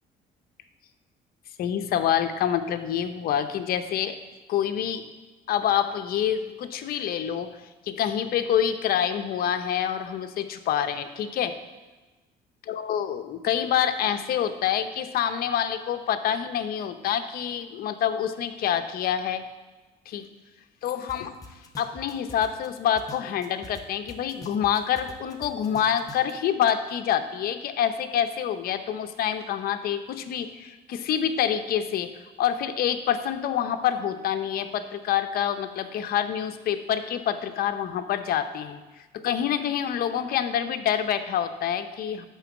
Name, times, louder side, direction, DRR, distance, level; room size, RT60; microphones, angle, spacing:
voice 1, 1.6-4.2 4.5-5.1 5.5-7.5 7.9-11.6 12.7-19.4 20.1-20.3 20.8-21.4 21.8-32.1 32.4-38.8 39.1-42.3, left 9 dB, 65° left, 9 dB, 0.7 m, -27 dB
sound 1, 21.1-21.2 21.4-23.8 24.1-26.3, left 2 dB, 20° left, 1.0 m, -44 dB
11.0 x 3.8 x 7.2 m, 1.2 s
cardioid pair, 110°, 17 cm